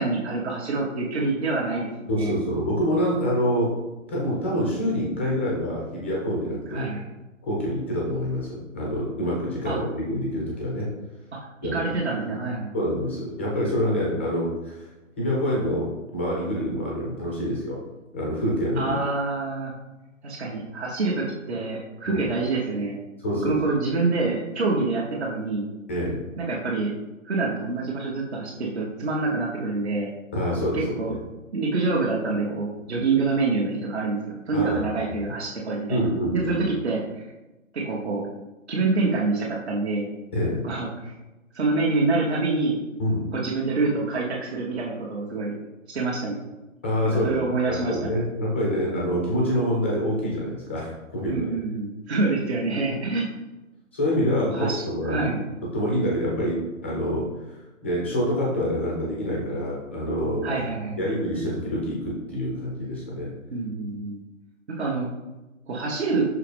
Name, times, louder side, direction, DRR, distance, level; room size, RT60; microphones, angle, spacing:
voice 1, 0.0-1.9 2.2-2.3 6.7-7.1 9.6-9.8 11.7-12.7 18.7-19.7 20.2-23.0 23.4-25.7 26.4-26.9 27.2-30.1 30.7-31.1 31.5-36.0 36.3-37.3 37.7-38.3 38.7-40.1 40.6-41.1 41.5-42.8 43.3-45.5 45.9-46.4 47.2-48.0 51.2-53.3 54.5-55.4 60.4-61.0 63.5-64.2 64.8-65.1 65.7-66.3, right 3 dB, 50° right, -4 dB, 1.1 m, -26 dB
voice 2, 2.1-3.8 4.1-6.9 7.4-10.9 11.6-11.8 12.7-14.9 15.2-17.8 18.1-19.0 22.1-22.2 23.2-23.6 25.9-26.2 30.3-31.2 34.5-34.8 35.2-35.3 35.9-36.6 40.3-40.7 43.0-43.3 46.8-47.4 47.7-51.6 53.9-55.3 55.7-57.3 57.8-60.5 61.0-63.3, equal, 10° left, -4 dB, 0.5 m, -26 dB
6.0 x 4.8 x 3.4 m, 1.1 s
figure-of-eight pair, 140°, 41 cm